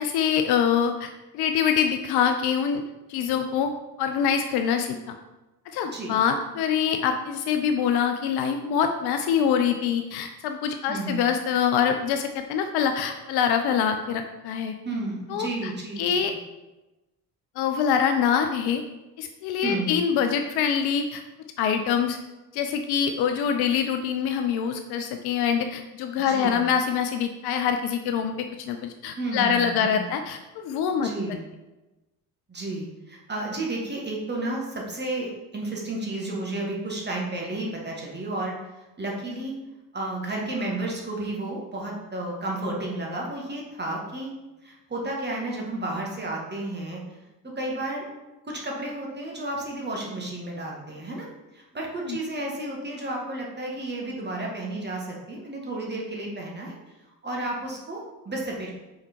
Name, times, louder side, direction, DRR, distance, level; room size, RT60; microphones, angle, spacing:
voice 1, 0.0-2.8 3.1-3.7 4.0-5.2 5.7-14.7 15.3-15.7 16.0-16.3 17.6-18.8 19.2-21.2 21.6-22.2 22.5-31.1 52.1-52.2, left 7 dB, 50° left, 6 dB, 0.6 m, -25 dB
voice 2, 10.9-11.3 14.8-16.4 19.6-20.0 26.3-26.7 29.1-30.1 31.0-31.4 32.5-39.6 39.9-44.3 44.6-47.2 47.6-48.1 48.4-51.3 51.5-56.9 57.2-58.7, right 2 dB, 20° right, -2 dB, 1.9 m, -32 dB
5.6 x 4.7 x 4.5 m, 1.1 s
figure-of-eight pair, 50°, 49 cm